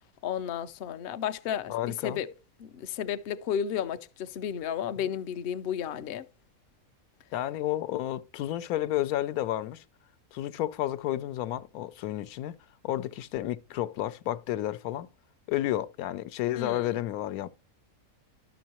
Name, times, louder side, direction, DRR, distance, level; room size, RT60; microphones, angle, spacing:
voice 1, 0.2-2.3 2.6-6.3 16.5-17.0, left 9 dB, 60° left, 0.6 m, -33 dB
voice 2, 1.7-2.2 7.3-9.8 10.3-12.6 12.8-15.1 15.5-17.5, left 13 dB, 80° left, 1.0 m, -31 dB
11.5 x 6.1 x 2.9 m
omnidirectional pair, 1.5 m